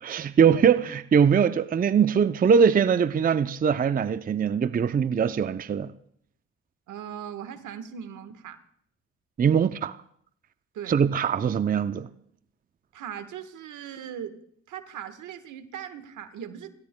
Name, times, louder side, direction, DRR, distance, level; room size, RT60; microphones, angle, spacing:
voice 1, 0.0-5.9 9.4-10.0 10.9-12.1, right 7 dB, 30° right, 0.5 m, -22 dB
voice 2, 6.9-8.6 10.7-11.0 12.9-14.4 14.7-16.7, right 9 dB, 75° right, 1.3 m, -39 dB
29.5 x 16.0 x 2.2 m
supercardioid pair, 65°, 31 cm